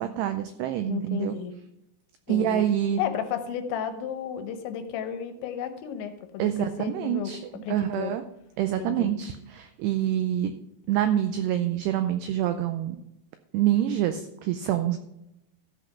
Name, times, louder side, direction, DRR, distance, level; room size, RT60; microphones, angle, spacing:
voice 1, 0.0-1.4 2.3-3.0 6.4-8.2 8.6-10.5 10.9-13.0 13.5-15.0, right 11 dB, 90° right, 9 dB, 2.3 m, -26 dB
voice 2, 0.9-1.5 2.3-2.6 3.0-7.3 7.6-8.1 8.8-9.1, left 9 dB, 80° left, 8 dB, 3.1 m, -33 dB
14.0 x 5.1 x 5.7 m, 0.85 s
omnidirectional pair, 5.4 m